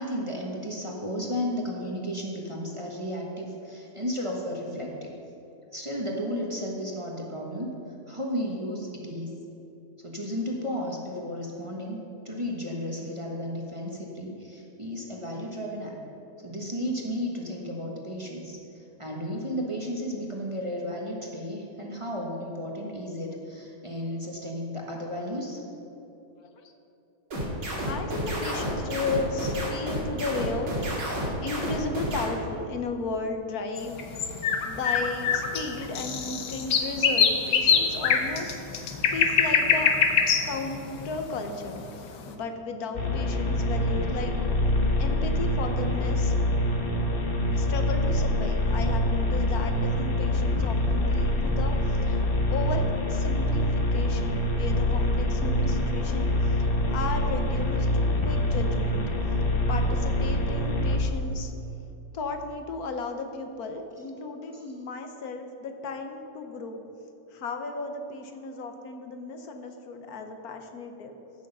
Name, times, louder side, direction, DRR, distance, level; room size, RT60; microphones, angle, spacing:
voice 1, 0.0-5.1 5.7-7.7 8.1-9.4 10.0-12.0 12.2-16.0 16.4-25.6 64.5-64.6, equal, 20° right, -1 dB, 1.1 m, -33 dB
sound 1, 27.3-32.3, equal, 85° right, 3.0 m, -30 dB
voice 2, 27.8-31.1 31.4-34.0 34.7-39.9 40.4-44.4 45.0-46.3 47.5-52.2 52.5-59.0 59.7-61.5 62.1-66.8 67.3-71.1, left 3 dB, 60° left, 5 dB, 1.3 m, -35 dB
sound 2, 33.8-42.0, left 6 dB, 85° left, 1.6 m, -24 dB
sound 3, 42.9-61.0, left 1 dB, 35° left, 1.1 m, -25 dB
15.0 x 6.3 x 5.5 m, 3.0 s
omnidirectional pair, 1.9 m